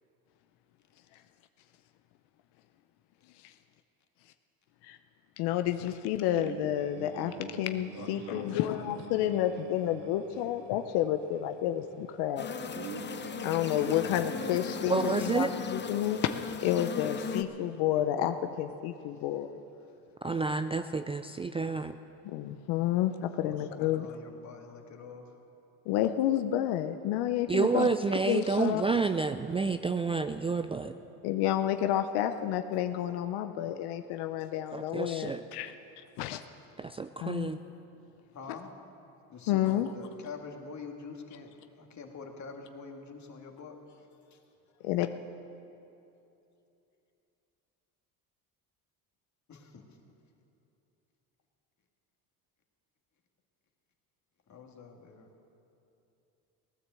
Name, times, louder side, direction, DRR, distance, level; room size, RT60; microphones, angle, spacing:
voice 1, 5.4-12.5 13.4-19.6 22.2-24.1 25.9-27.9 28.3-28.8 31.2-36.4 37.2-37.5 39.5-39.9 44.8-45.1, left 12 dB, 80° left, 8 dB, 0.7 m, -30 dB
sound 1, 6.3-17.5, right 8 dB, 75° right, 0.9 m, -47 dB
voice 2, 7.9-9.0 14.0-14.6 19.1-19.2 23.4-25.4 34.4-34.5 38.3-38.7 39.3-44.4 44.7-44.8 49.5-50.0 54.5-55.3, left 5 dB, 45° left, 3 dB, 2.1 m, -46 dB
sound 2, 12.4-17.4, left 6 dB, 25° left, 0.8 m, -37 dB
voice 3, 14.9-15.5 20.2-22.0 27.5-30.9 34.7-35.4 36.8-37.6, right 4 dB, 15° right, 9 dB, 0.3 m, -29 dB
17.0 x 9.9 x 7.6 m, 2.8 s
supercardioid pair, 90°, 39 cm